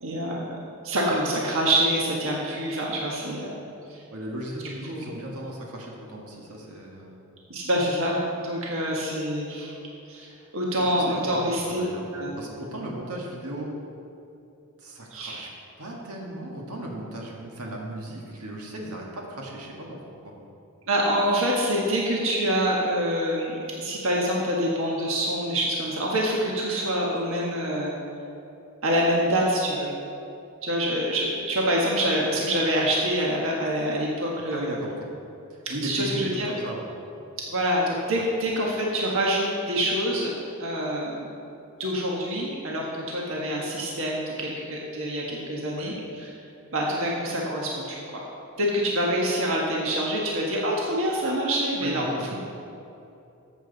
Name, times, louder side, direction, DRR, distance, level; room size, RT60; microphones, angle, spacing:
voice 1, 0.0-0.6 0.8-3.6 3.9-4.0 4.9-5.1 7.5-9.7 10.1-10.3 10.5-11.8 12.1-12.3 15.1-15.5 20.9-27.9 28.8-29.9 30.6-34.8 35.8-36.5 37.5-40.3 40.6-41.3 41.8-46.3 46.7-48.2 48.6-52.0, equal, 60° right, -3 dB, 1.5 m, -26 dB
voice 2, 4.1-7.2 10.8-12.0 12.3-13.7 14.8-15.5 15.8-20.3 34.5-35.1 35.5-36.8 38.1-38.2 45.8-45.9 51.8-52.4, right 1 dB, 85° right, -1 dB, 1.7 m, -36 dB
14.0 x 7.5 x 4.0 m, 2.8 s
head